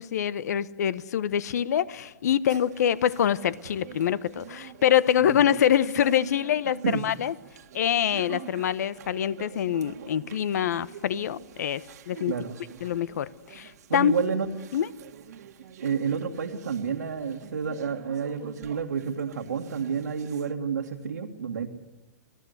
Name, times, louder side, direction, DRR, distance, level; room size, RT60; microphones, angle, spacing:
voice 1, 0.0-7.3 7.7-12.3 12.8-14.1 14.7-14.9, left 10 dB, 70° left, 1.1 m, -25 dB
sound 1, 2.5-20.5, right 9 dB, 70° right, 1.9 m, -46 dB
voice 2, 12.3-12.6 13.9-14.5 15.8-21.7, right 6 dB, 90° right, 2.2 m, -30 dB
28.5 x 18.5 x 8.1 m
hypercardioid pair, 125°, 9 cm